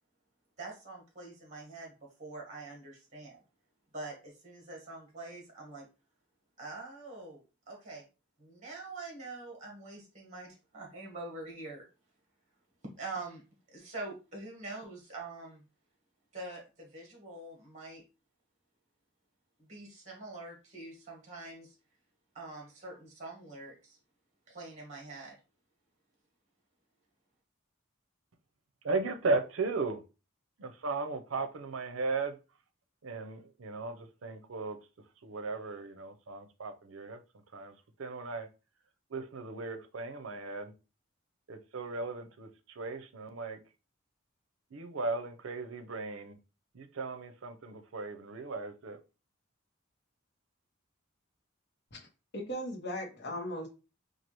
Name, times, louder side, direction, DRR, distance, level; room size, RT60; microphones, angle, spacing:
voice 1, 0.6-3.4 3.9-5.9 6.6-8.0 8.4-11.9 13.0-13.4 13.7-15.6 16.3-18.0 19.7-21.7 22.3-24.0 24.5-25.4, right 2 dB, 35° right, 1.3 m, -45 dB
voice 2, 28.8-30.0 30.6-32.4 33.0-34.8 35.2-37.2 37.5-37.7 38.0-38.5 39.1-40.7 41.5-43.6 44.7-46.4 46.7-49.0, right 3 dB, 75° right, 0.6 m, -36 dB
voice 3, 52.3-53.7, equal, 55° left, 1.0 m, -37 dB
4.6 x 2.4 x 3.0 m
head